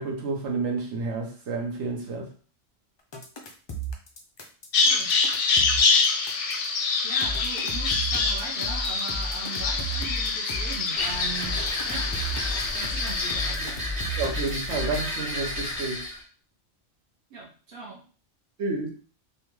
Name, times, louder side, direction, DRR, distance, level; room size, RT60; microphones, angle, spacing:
voice 1, 0.0-2.3 14.2-16.0 18.6-18.9, right 3 dB, 80° right, 1 dB, 1.2 m, -30 dB
sound 1, 3.1-6.7 7.2-10.9 11.4-15.2, equal, 45° left, 0.3 m, -34 dB
Bird vocalization bird call bird song, 4.7-13.6, left 4 dB, 85° left, 0.9 m, -25 dB
voice 2, 7.0-12.1 12.7-13.8 17.3-18.0, right 3 dB, 55° right, -6 dB, 1.0 m, -39 dB
sound 2, 10.9-16.2, left 1 dB, 35° right, 1.3 m, -33 dB
3.4 x 2.4 x 3.0 m, 0.40 s
omnidirectional pair, 1.2 m